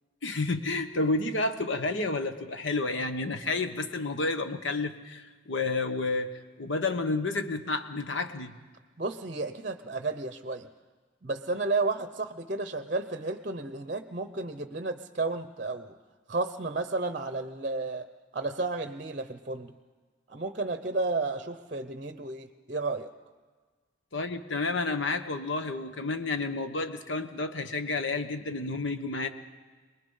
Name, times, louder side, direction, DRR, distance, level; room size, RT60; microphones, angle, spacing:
voice 1, 0.2-8.6 24.1-29.3, left 3 dB, 75° left, 8 dB, 1.2 m, -30 dB
voice 2, 9.0-10.7 11.2-15.9 16.3-18.1 18.3-19.7 20.3-23.1, right 3 dB, 40° right, 9 dB, 0.7 m, -32 dB
23.5 x 20.5 x 5.6 m, 1.4 s
head